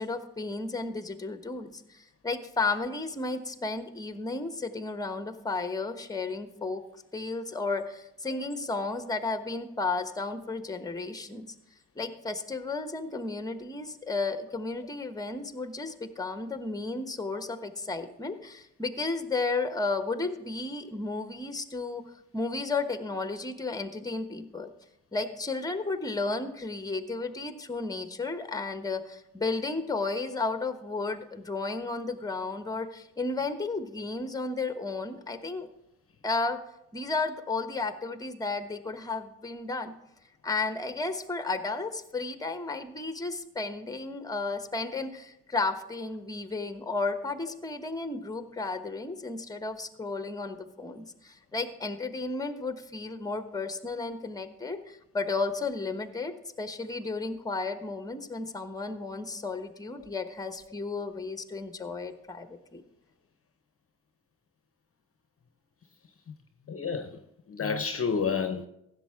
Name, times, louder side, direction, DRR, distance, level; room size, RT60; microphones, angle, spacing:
voice 1, 0.0-6.8 7.1-11.5 12.0-22.0 22.3-24.7 25.1-35.7 36.2-36.6 36.9-39.9 40.4-62.8, left 3 dB, 10° left, 1.1 m, -33 dB
voice 2, 66.7-67.2 67.5-68.7, left 5 dB, 35° left, 0.8 m, -30 dB
15.5 x 6.7 x 3.6 m
hypercardioid pair, 45°, 39 cm